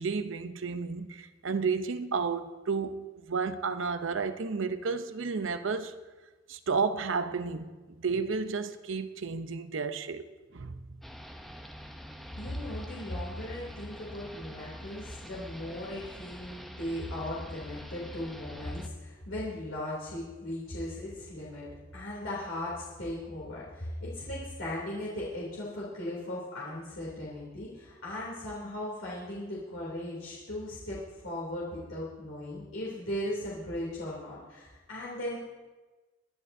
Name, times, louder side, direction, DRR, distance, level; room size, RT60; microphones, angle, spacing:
voice 1, 0.0-5.9 6.5-7.7 8.0-11.0, right 5 dB, 80° right, 0.7 m, -32 dB
sound 1, 11.0-18.9, equal, ahead, 0.7 m, -45 dB
voice 2, 12.4-21.7 21.9-35.4, left 1 dB, 90° left, 3.0 m, -37 dB
23.0 x 11.0 x 2.7 m
head